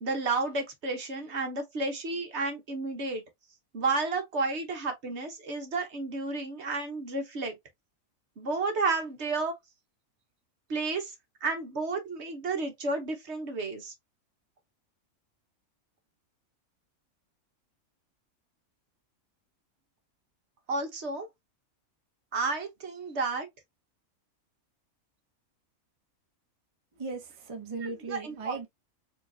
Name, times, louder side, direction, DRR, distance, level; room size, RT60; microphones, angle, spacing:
voice 1, 0.0-3.2 3.7-7.6 8.4-9.5 10.7-11.1 11.4-13.9 20.7-21.3 22.3-23.5 27.8-28.6, right 3 dB, 55° right, 1.3 m, -31 dB
voice 2, 27.0-28.7, right 3 dB, 30° right, 0.7 m, -38 dB
4.4 x 2.9 x 2.7 m
omnidirectional pair, 1.5 m